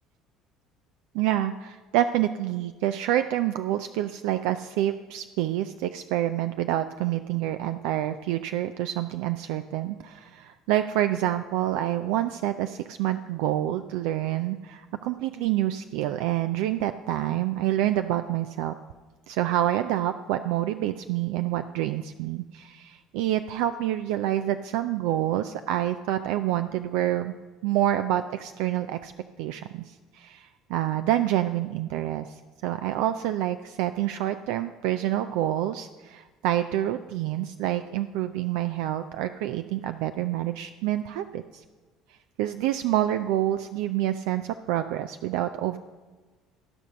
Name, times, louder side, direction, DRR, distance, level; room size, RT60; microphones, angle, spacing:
voice 1, 1.1-18.7 19.3-27.3 27.6-29.1 29.4-41.6 42.4-45.8, right 13 dB, 70° right, 9 dB, 0.3 m, -27 dB
13.5 x 5.3 x 6.3 m, 1.3 s
hypercardioid pair, 65°, 0 cm